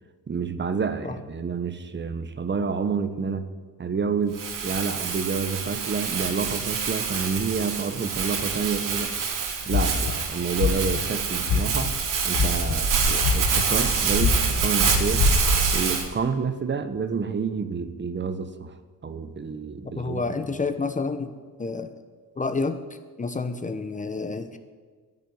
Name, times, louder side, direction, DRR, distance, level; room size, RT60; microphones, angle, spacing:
voice 1, 0.3-3.5 3.8-9.1 9.7-11.9 12.2-15.3 15.7-18.8 19.0-20.2, right 5 dB, 30° right, 11 dB, 1.1 m, -29 dB
Crumpling crinkling, 4.3-16.0, right 5 dB, 60° right, 2.9 m, -26 dB
sound 1, 9.7-10.1 10.5-11.0 11.5-11.9 12.3-12.8 13.2-13.8 14.2-14.6 15.1-15.3, left 8 dB, 90° left, 1.5 m, -23 dB
voice 2, 20.0-21.9 22.4-22.8 23.2-24.6, left 4 dB, 20° left, 10 dB, 0.9 m, -29 dB
10.5 x 10.0 x 9.5 m, 1.5 s
cardioid pair, 110°, 36 cm